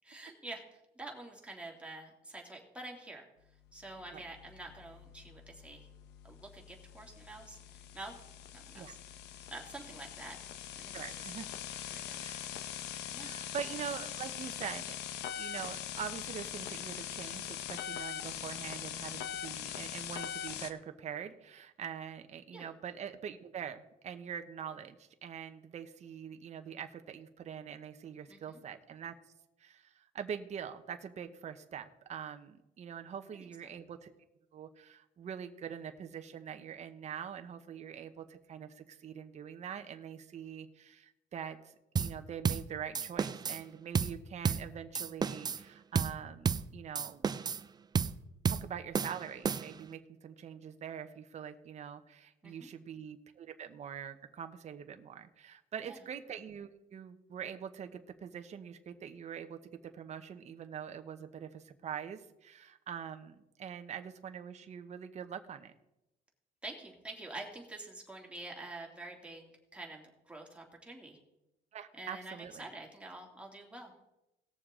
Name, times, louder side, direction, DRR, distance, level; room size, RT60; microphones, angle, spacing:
voice 1, 0.0-3.3 3.7-5.9 6.2-8.1 8.5-9.0 9.5-10.4 10.8-11.0 11.4-11.6 11.9-12.3 13.1-13.3 22.5-22.7 28.3-28.6 33.4-33.7 52.4-52.7 55.8-56.0 66.6-71.2 72.0-74.1, right 2 dB, 5° right, 0 dB, 2.6 m, -47 dB
sound 1, 3.8-20.7, left 10 dB, 85° left, 0.8 m, -42 dB
voice 2, 10.9-11.5 12.2-12.4 13.2-14.9 15.3-29.1 29.6-34.1 34.5-47.3 48.5-65.7 71.7-72.6, right 8 dB, 40° right, 8 dB, 0.9 m, -44 dB
sound 2, 42.0-42.2 42.4-42.7 42.9-43.6 43.9-44.2 44.4-44.7 44.9-45.6 46.0-46.2 46.5-46.7 47.0-47.6 48.0-48.2 48.5-48.7 48.9-49.9, right 6 dB, 25° right, 0.4 m, -32 dB
18.5 x 7.0 x 3.7 m, 0.90 s
cardioid pair, 110°, 17 cm